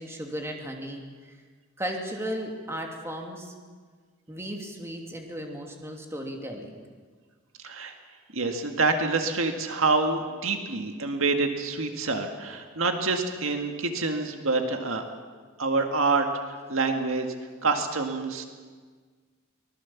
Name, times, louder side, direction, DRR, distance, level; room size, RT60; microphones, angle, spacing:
voice 1, 0.0-1.3 1.8-3.5 4.3-6.8, equal, 15° right, 1 dB, 2.7 m, -35 dB
voice 2, 8.3-15.0 15.6-16.3 16.7-17.3 17.6-18.4, right 3 dB, 70° right, 5 dB, 1.9 m, -26 dB
24.0 x 19.5 x 7.3 m, 1.5 s
head